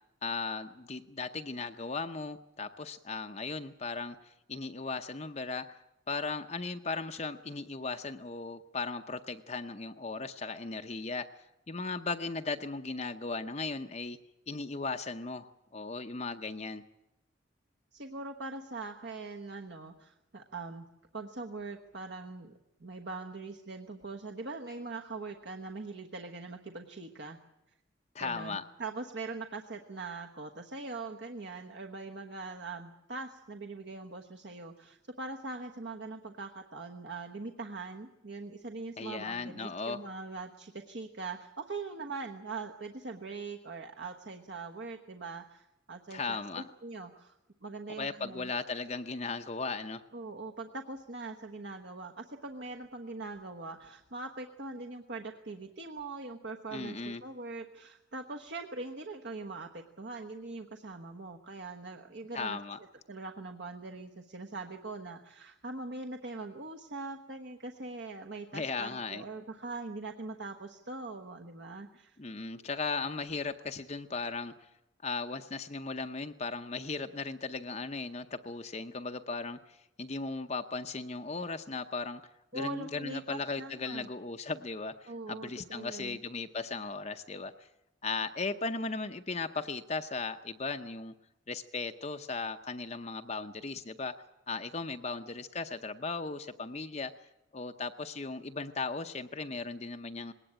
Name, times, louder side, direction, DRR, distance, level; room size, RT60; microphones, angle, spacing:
voice 1, 0.2-5.8 6.1-11.3 11.7-14.2 14.5-16.8 28.1-28.6 39.0-40.0 46.1-46.7 48.0-50.0 56.7-57.2 62.3-62.8 68.5-69.2 72.2-74.5 75.0-82.2 82.5-87.5 88.0-91.1 91.5-94.1 94.5-97.1 97.5-100.3, left 4 dB, 35° left, 7 dB, 0.7 m, -37 dB
voice 2, 17.9-20.9 21.1-27.4 28.2-47.4 47.6-48.5 50.1-62.6 63.1-72.2 82.5-84.1 85.0-86.2, right 3 dB, 60° right, 3 dB, 1.2 m, -42 dB
20.5 x 18.0 x 8.9 m, 0.91 s
head